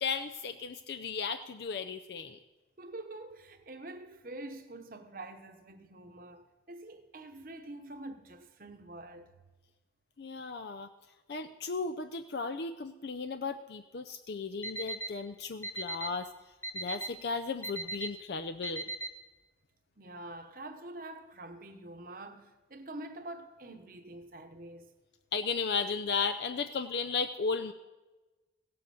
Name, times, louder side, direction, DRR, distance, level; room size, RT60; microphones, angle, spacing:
voice 1, 0.0-2.4 10.2-10.9 11.3-16.3 16.7-18.8 25.3-27.7, left 5 dB, 60° left, 0.5 m, -35 dB
voice 2, 2.8-9.3 20.0-24.9, right 2 dB, 50° right, 1.0 m, -46 dB
Alarm, 14.6-15.1 15.6-16.1 16.6-17.1 17.6-18.1 18.6-19.1, right 2 dB, 10° left, 0.9 m, -36 dB
16.5 x 7.7 x 7.0 m
head